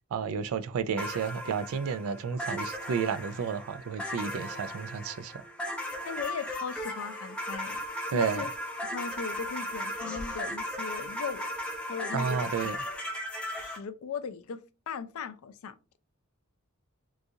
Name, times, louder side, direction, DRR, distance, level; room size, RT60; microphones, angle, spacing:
voice 1, 0.1-5.4 8.1-8.5 12.1-12.8, right 6 dB, 80° right, 0.3 m, -31 dB
Space Hat, 1.0-13.8, equal, 5° left, 0.6 m, -36 dB
voice 2, 6.1-7.8 8.1-8.5 8.8-12.5 13.5-14.6 14.9-15.8, left 6 dB, 80° left, 0.4 m, -38 dB
3.8 x 2.4 x 2.6 m
head